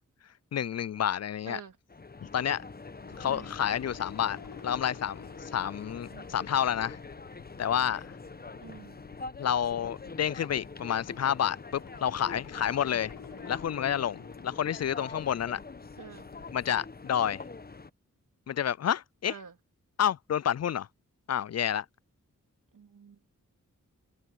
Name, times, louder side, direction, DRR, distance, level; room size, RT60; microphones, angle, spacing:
voice 1, 0.5-1.6 2.2-2.6 3.2-4.4 4.6-7.0 7.6-8.1 9.4-13.1 13.5-15.6 16.5-17.4 18.5-19.3 20.0-20.9 21.3-21.9, left 9 dB, 55° left, 0.5 m, -29 dB
voice 2, 1.5-1.8 3.2-3.5 6.1-6.4 8.6-9.0 16.0-16.3 19.3-19.5 22.7-23.3, right 7 dB, 80° right, 3.4 m, -47 dB
sound 1, 1.9-17.9, left 3 dB, 30° left, 1.1 m, -45 dB
sound 2, 3.0-16.8, left 8 dB, 85° left, 1.3 m, -51 dB
open air
cardioid pair, 45°, 32 cm